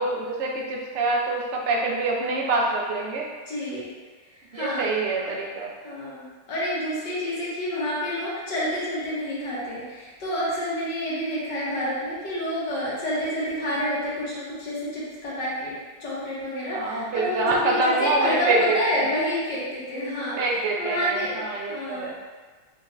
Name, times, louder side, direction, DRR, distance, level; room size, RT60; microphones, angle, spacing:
voice 1, 0.0-3.3 4.5-5.7 16.7-19.1 20.4-22.1, right 2 dB, 60° right, -1 dB, 0.8 m, -25 dB
voice 2, 3.5-3.9 4.3-4.9 5.2-5.3 5.8-20.4 20.8-21.4 21.7-22.1, equal, 80° left, -8 dB, 1.9 m, -29 dB
5.7 x 2.6 x 3.1 m, 1.4 s
omnidirectional pair, 1.9 m